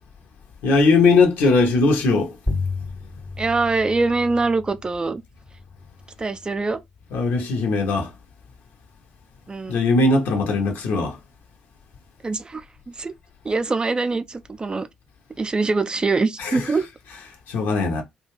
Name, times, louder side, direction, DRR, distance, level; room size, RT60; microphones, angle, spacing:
voice 1, 0.6-2.4 7.1-8.1 9.7-11.2 16.4-18.0, left 3 dB, 65° left, 0.8 m, -20 dB
sound 1, 2.5-7.5, left 3 dB, 15° left, 0.7 m, -33 dB
voice 2, 3.4-5.2 6.2-6.8 9.5-9.8 12.2-13.1 13.4-14.9 15.4-16.9, right 3 dB, 25° right, 0.3 m, -23 dB
2.4 x 2.2 x 3.1 m
figure-of-eight pair, 45°, 4 cm